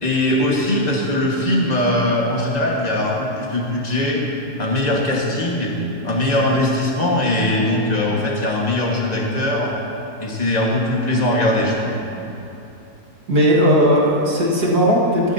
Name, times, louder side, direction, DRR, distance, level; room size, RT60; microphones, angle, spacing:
voice 1, 0.0-4.2 4.6-5.7 6.0-9.7 10.2-12.0, left 1 dB, 25° left, -2 dB, 1.6 m, -20 dB
voice 2, 13.3-15.3, equal, 65° right, -4 dB, 2.2 m, -16 dB
14.0 x 13.5 x 2.8 m, 2.8 s
omnidirectional pair, 1.7 m